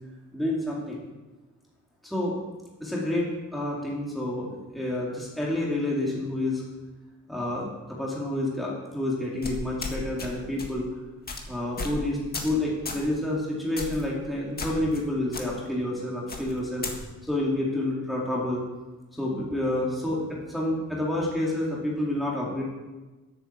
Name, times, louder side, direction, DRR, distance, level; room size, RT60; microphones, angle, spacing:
voice 1, 0.3-1.0 2.0-2.3 2.8-6.6 7.3-10.8 11.5-16.8 17.2-18.6 19.1-22.6, left 1 dB, ahead, -5 dB, 2.3 m, -29 dB
sound 1, 9.4-10.3 10.6-10.8 11.3-11.4 11.8-12.0 12.3-12.6 12.9-13.1 13.8-14.0 14.6-15.0 15.3-15.4 16.3-17.0, left 3 dB, 30° left, 1.8 m, -34 dB
10.0 x 8.8 x 7.3 m, 1.2 s
wide cardioid pair, 165°, 30 cm